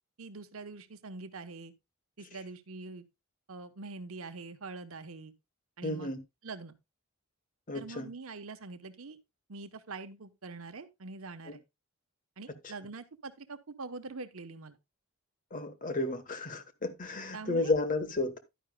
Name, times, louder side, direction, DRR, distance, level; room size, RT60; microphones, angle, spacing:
voice 1, 0.2-1.7 2.2-3.0 3.5-5.3 5.8-6.1 6.4-6.8 7.7-9.2 9.5-11.6 12.4-14.8 17.3-17.7, right 3 dB, 70° right, 1.0 m, -44 dB
voice 2, 5.8-6.2 7.7-8.1 15.5-18.4, left 2 dB, 40° left, 1.2 m, -32 dB
11.0 x 10.0 x 2.2 m
head